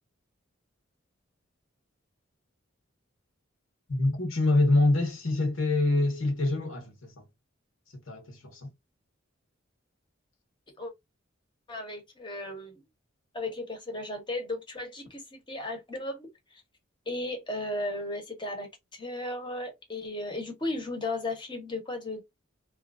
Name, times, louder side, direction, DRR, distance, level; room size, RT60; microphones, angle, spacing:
voice 1, 3.9-7.2 8.1-8.7, left 2 dB, 80° left, 1.1 m, -25 dB
voice 2, 11.7-12.7 13.3-16.6 17.1-22.2, left 2 dB, 25° left, 1.1 m, -35 dB
2.8 x 2.5 x 2.4 m
head